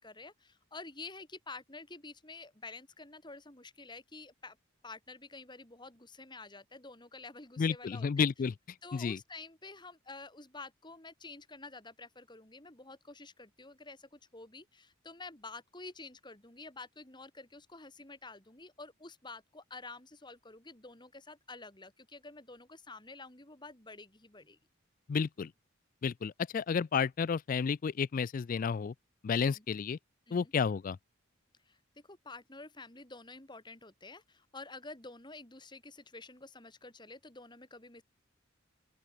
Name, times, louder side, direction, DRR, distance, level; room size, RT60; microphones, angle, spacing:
voice 1, 0.0-4.6 4.8-8.3 8.8-24.6 29.4-29.6 30.3-30.5 31.7-31.8 32.0-38.0, left 3 dB, 20° left, 3.1 m, -49 dB
voice 2, 7.6-8.5 8.9-9.2 25.1-25.5 26.0-28.9 29.2-30.0 30.3-31.0, left 6 dB, 40° left, 0.3 m, -31 dB
open air
head